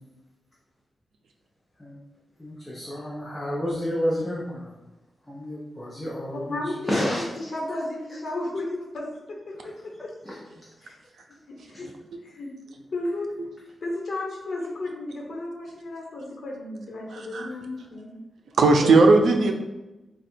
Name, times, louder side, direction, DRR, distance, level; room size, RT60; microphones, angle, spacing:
voice 1, 2.4-4.7 5.3-6.6 6.9-7.2 9.6-9.7 10.2-10.4 18.8-18.9, equal, 10° left, -5 dB, 0.6 m, -30 dB
voice 2, 6.3-10.1 10.8-11.0 11.5-11.9 12.2-12.5 12.9-13.3 13.8-18.1, left 2 dB, 60° left, -1 dB, 1.0 m, -33 dB
voice 3, 17.1-17.5 17.8-17.9 18.6-19.5, right 3 dB, 80° right, 3 dB, 0.5 m, -18 dB
3.7 x 2.3 x 4.3 m, 1.0 s
wide cardioid pair, 140°, 0 cm